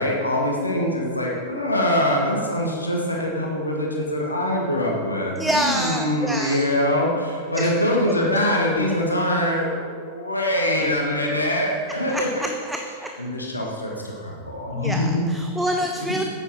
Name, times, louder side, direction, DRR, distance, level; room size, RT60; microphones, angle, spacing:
voice 1, 0.0-12.5 13.0-15.2 15.9-16.2, left 1 dB, 80° left, -1 dB, 1.4 m, -24 dB
voice 2, 5.4-6.6 7.5-7.7 12.1-12.8 14.7-16.2, equal, 5° right, 3 dB, 0.6 m, -26 dB
9.7 x 8.2 x 4.5 m, 2.2 s
figure-of-eight pair, 90°, 0 cm